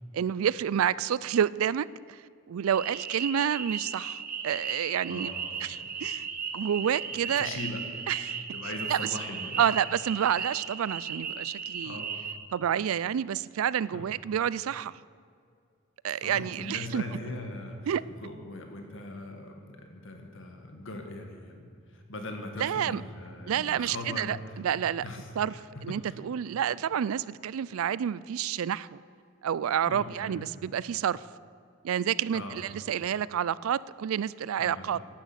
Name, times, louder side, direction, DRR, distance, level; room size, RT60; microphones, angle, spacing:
voice 1, 0.1-2.2 2.5-5.3 5.6-6.3 6.5-7.6 8.1-8.4 8.9-9.0 9.6-12.0 12.5-15.0 16.0-17.0 17.9-18.0 22.6-23.0 23.5-25.0 25.4-25.5 25.8-29.0 29.4-31.2 31.8-35.0, right 9 dB, 90° right, 20 dB, 0.4 m, -29 dB
sound 1, 2.7-12.3, right 6 dB, 45° right, 1.1 m, -36 dB
voice 2, 5.1-5.9 7.3-7.8 8.5-9.7 11.8-12.2 13.9-14.1 16.2-19.5 19.9-24.6 25.0-26.1 29.8-30.5 32.3-32.6 34.6-35.0, left 2 dB, 65° left, 4 dB, 1.9 m, -40 dB
11.5 x 10.5 x 8.0 m, 2.3 s
head